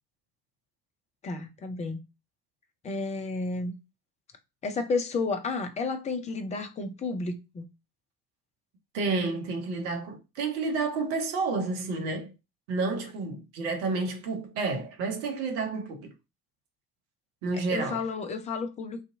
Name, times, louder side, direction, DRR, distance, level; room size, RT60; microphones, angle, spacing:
voice 1, 1.2-2.0 2.8-3.7 4.6-7.6 17.7-19.0, left 3 dB, 15° left, 0.3 m, -31 dB
voice 2, 8.9-12.3 12.7-16.1 17.4-18.0, right 3 dB, 65° right, 0.8 m, -30 dB
2.6 x 2.3 x 2.5 m
figure-of-eight pair, 45°, 47 cm